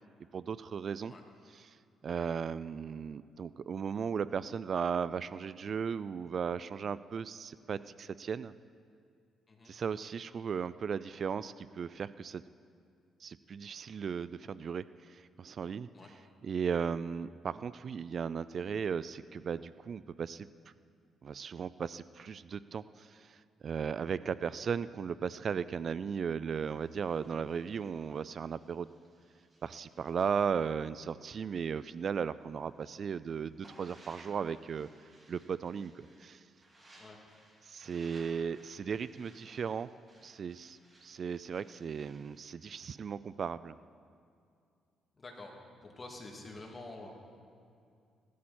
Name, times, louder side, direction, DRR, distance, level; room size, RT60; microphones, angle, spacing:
voice 1, 0.3-1.1 1.5-1.8 2.0-8.5 9.7-12.4 13.2-20.5 21.2-28.9 29.6-36.5 37.6-39.9 40.2-43.8, right 6 dB, 50° right, 16 dB, 0.3 m, -36 dB
sound 1, 26.5-32.1 32.5-42.4, right 1 dB, 25° right, 4.5 m, -62 dB
voice 2, 45.2-45.5 45.8-47.2, left 2 dB, 30° left, 0 dB, 2.6 m, -47 dB
17.0 x 13.0 x 4.3 m, 2.4 s
cardioid pair, 90°, 0 cm